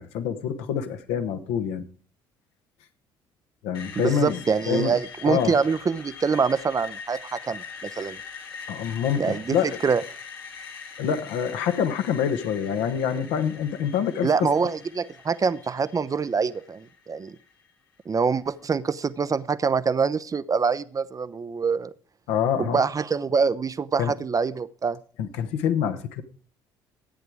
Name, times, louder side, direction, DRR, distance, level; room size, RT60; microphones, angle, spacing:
voice 1, 0.0-1.9 3.6-4.4 4.7-5.0 5.3-5.6 8.7-9.8 11.0-14.5 22.3-22.8 24.0-24.1 25.2-26.2, left 8 dB, 65° left, 8 dB, 1.3 m, -26 dB
Screech, 3.7-17.7, left 6 dB, 85° left, 1.5 m, -42 dB
voice 2, 4.0-7.6 8.0-8.2 9.2-10.0 14.2-17.3 18.1-21.9 22.6-25.0, right 5 dB, 30° right, 15 dB, 0.7 m, -25 dB
13.5 x 9.2 x 4.9 m, 0.41 s
figure-of-eight pair, 55°, 12 cm